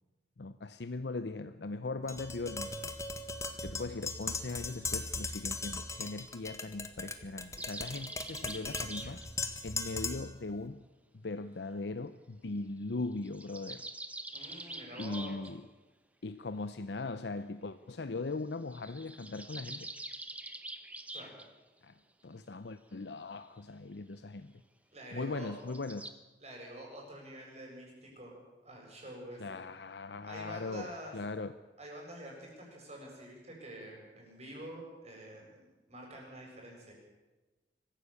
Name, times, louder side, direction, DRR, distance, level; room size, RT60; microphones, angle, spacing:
voice 1, 0.4-2.9 3.6-9.2 9.6-10.8 11.2-13.9 15.0-15.7 16.2-19.9 21.8-22.0 22.2-24.5 25.1-26.1 29.4-31.5, left 3 dB, 65° left, 11 dB, 0.7 m, -39 dB
Tap, 2.1-10.4, left 3 dB, 15° left, 1.5 m, -39 dB
sound 1, 7.6-9.3 13.0-15.5 18.7-21.5 25.6-26.1, right 2 dB, 10° right, 1.1 m, -45 dB
voice 2, 14.3-15.4 21.1-21.3 24.9-25.5 26.4-28.4 28.6-29.6 30.2-31.1 31.8-35.6 35.9-36.9, right 1 dB, 35° right, 0 dB, 7.9 m, -47 dB
24.0 x 15.0 x 8.4 m, 1.1 s
head